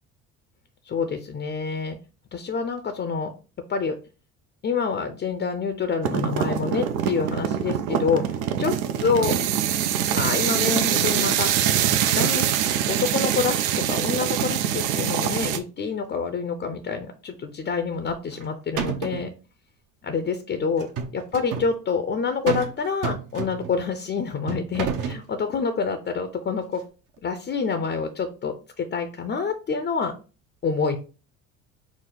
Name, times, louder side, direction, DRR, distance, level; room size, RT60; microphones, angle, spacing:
voice 1, 0.8-2.0 2.3-3.3 3.7-4.0 4.6-9.3 10.1-11.5 12.1-19.3 20.0-26.8 27.2-30.1 30.6-31.0, left 5 dB, 25° left, 8 dB, 0.5 m, -27 dB
sound 1, 6.0-15.6, right 10 dB, 80° right, 0.6 m, -24 dB
sound 2, 18.1-18.5 18.8-19.3 20.8-21.7 22.5-22.8 23.0-23.8 24.5-25.2, right 6 dB, 50° right, 0.9 m, -29 dB
4.9 x 2.0 x 3.9 m, 0.35 s
hypercardioid pair, 75°, 40 cm